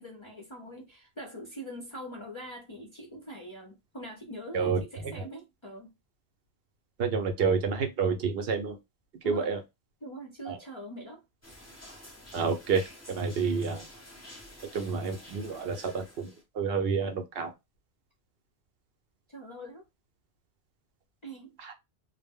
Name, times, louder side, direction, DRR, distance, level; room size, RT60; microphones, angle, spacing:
voice 1, 0.0-5.9 9.2-9.5 10.0-11.2 19.3-19.9 21.2-21.6, right 1 dB, 40° left, 0.4 m, -43 dB
voice 2, 4.5-5.2 7.0-8.8 9.2-9.6 10.5-10.6 12.3-12.8 13.1-13.9 14.7-17.5 21.6-21.7, right 5 dB, 65° right, 0.8 m, -29 dB
sound 1, 11.4-16.4, left 1 dB, 15° left, 0.8 m, -50 dB
2.1 x 2.0 x 3.5 m
omnidirectional pair, 1.1 m